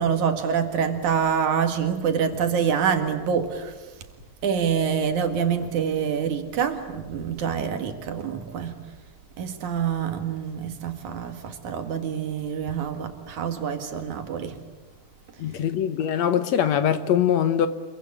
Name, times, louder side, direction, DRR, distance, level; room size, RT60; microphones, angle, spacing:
voice 1, 0.0-3.7 4.4-8.8 9.4-14.6 15.6-15.7, right 7 dB, 70° right, 7 dB, 3.3 m, -26 dB
voice 2, 15.4-17.7, left 9 dB, 70° left, 11 dB, 2.1 m, -22 dB
27.0 x 23.5 x 8.7 m, 1.2 s
omnidirectional pair, 3.6 m